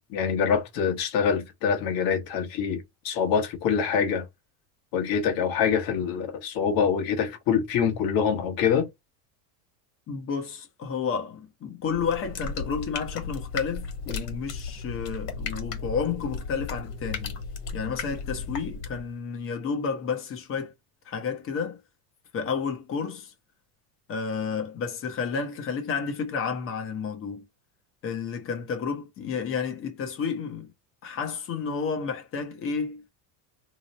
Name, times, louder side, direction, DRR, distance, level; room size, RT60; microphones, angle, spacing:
voice 1, 0.1-4.3 4.9-8.9, left 7 dB, 45° left, 1.1 m, -25 dB
voice 2, 10.1-17.4 17.7-20.7 21.0-21.8 22.3-23.3 24.1-27.4 28.0-30.7 31.0-33.0, left 6 dB, 25° left, 0.8 m, -31 dB
sound 1, 11.9-19.1, left 5 dB, 85° left, 1.4 m, -35 dB
3.0 x 2.0 x 3.9 m
cardioid pair, 155°, 48 cm